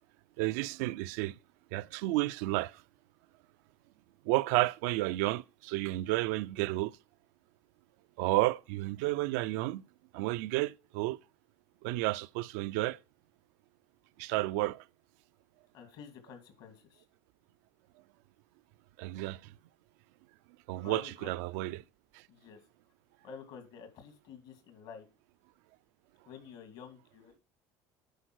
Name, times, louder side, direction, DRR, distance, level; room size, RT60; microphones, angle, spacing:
voice 1, 0.4-1.4 1.7-2.8 4.3-7.0 8.2-9.8 10.1-11.2 11.8-13.0 14.2-14.8 19.0-19.5 20.7-21.8, right 18 dB, 85° right, 0.4 m, -31 dB
voice 2, 15.7-17.0 20.8-21.3 22.3-22.6 23.2-25.0 26.3-27.4, left 6 dB, 70° left, 2.6 m, -49 dB
10.0 x 4.5 x 6.2 m
supercardioid pair, 100°, 8 cm